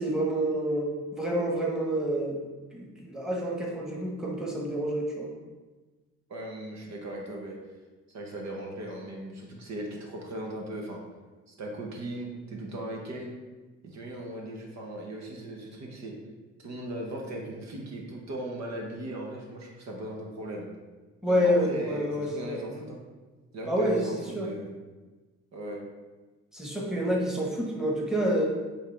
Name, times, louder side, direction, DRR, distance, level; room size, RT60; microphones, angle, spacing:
voice 1, 0.0-2.4 2.7-5.3 21.2-22.6 23.7-24.5 26.5-28.5, equal, ahead, -3 dB, 1.5 m, -28 dB
voice 2, 6.3-7.6 8.1-11.0 11.5-13.3 13.8-16.1 16.6-20.7 21.3-23.0 23.5-24.7 25.5-25.8, right 1 dB, 65° right, 0 dB, 1.2 m, -38 dB
8.3 x 3.6 x 3.5 m, 1.3 s
cardioid pair, 90°, 30 cm